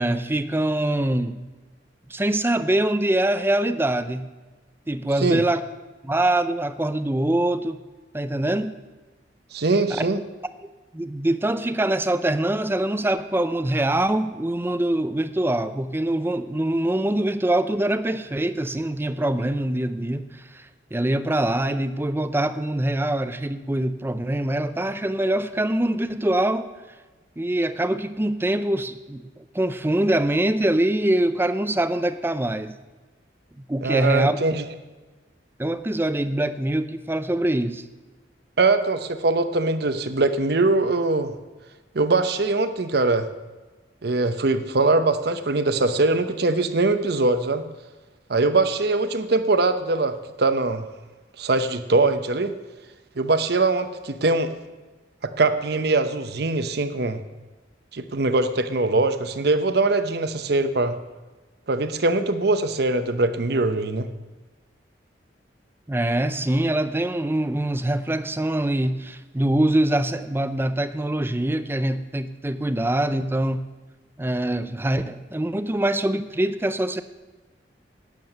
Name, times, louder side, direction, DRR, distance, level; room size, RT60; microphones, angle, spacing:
voice 1, 0.0-1.4 2.1-4.3 4.9-5.6 6.0-7.8 8.1-8.8 9.9-10.1 10.9-20.7 20.9-26.7 27.4-32.8 33.6-34.4 35.6-37.8 65.9-73.6 74.2-77.0, right 1 dB, 15° right, 12 dB, 0.5 m, -24 dB
voice 2, 9.5-10.2 33.8-34.6 38.6-41.3 41.9-43.3 44.0-47.6 48.3-50.9 51.4-52.5 53.2-54.5 55.2-57.2 57.9-60.9 61.7-64.1, right 3 dB, 60° right, 10 dB, 0.8 m, -22 dB
11.5 x 9.2 x 6.6 m, 1.2 s
head